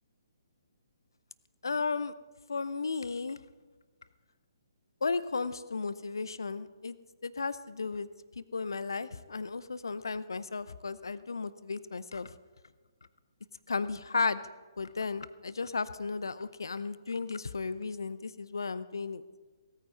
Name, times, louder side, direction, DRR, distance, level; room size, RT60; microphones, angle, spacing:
voice 1, 1.6-2.1 2.5-3.4 5.0-7.0 7.2-8.1 8.4-12.3 13.7-14.4 14.8-19.2, left 4 dB, 65° left, 16 dB, 0.6 m, -34 dB
17.0 x 9.1 x 5.4 m, 1.4 s
figure-of-eight pair, 130°, 2 cm